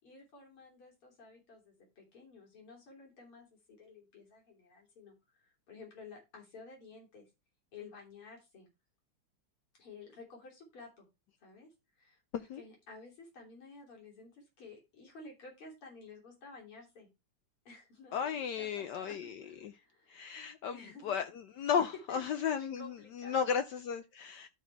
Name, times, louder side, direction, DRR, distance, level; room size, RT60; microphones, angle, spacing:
voice 1, 0.0-7.3 7.7-8.7 9.8-11.1 11.4-17.1 17.7-20.5 20.7-21.2 22.1-23.4, left 3 dB, 90° left, 4.0 m, -53 dB
voice 2, 18.1-19.3 20.1-21.3 21.6-24.5, left 7 dB, 75° left, 1.0 m, -34 dB
12.0 x 4.1 x 4.5 m
omnidirectional pair, 2.4 m